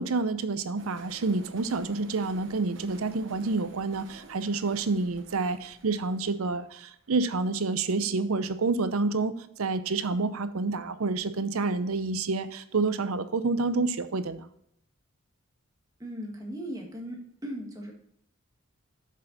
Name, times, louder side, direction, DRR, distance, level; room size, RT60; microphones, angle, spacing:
voice 1, 0.0-14.5, right 3 dB, 90° right, 12 dB, 0.7 m, -28 dB
sound 1, 0.8-7.8, right 2 dB, 60° right, 1.0 m, -51 dB
voice 2, 16.0-17.2 17.4-17.9, equal, 15° right, 0 dB, 1.6 m, -37 dB
7.9 x 6.6 x 3.9 m, 0.71 s
head